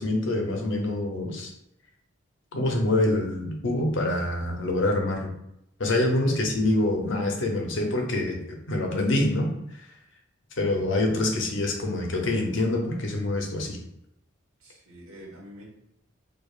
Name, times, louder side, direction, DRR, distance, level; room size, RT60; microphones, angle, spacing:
voice 1, 0.0-1.5 2.5-5.3 5.8-9.5 10.6-13.8, left 2 dB, 65° left, 2 dB, 0.7 m, -25 dB
voice 2, 6.1-6.4 14.6-15.6, equal, 90° right, -4 dB, 1.4 m, -47 dB
4.8 x 2.3 x 2.4 m, 0.81 s
head